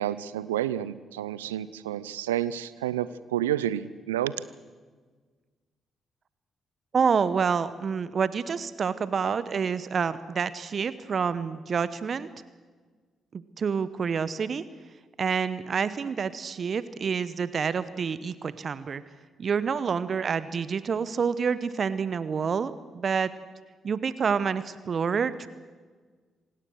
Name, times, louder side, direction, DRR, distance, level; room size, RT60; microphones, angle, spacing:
voice 1, 0.0-4.3, right 12 dB, 85° right, 17 dB, 0.6 m, -30 dB
voice 2, 6.9-12.3 13.3-14.6 15.2-19.0 19.4-23.3 23.8-25.5, right 6 dB, 50° right, 15 dB, 0.9 m, -28 dB
27.0 x 18.5 x 6.5 m, 1.5 s
hypercardioid pair, 40°, 0 cm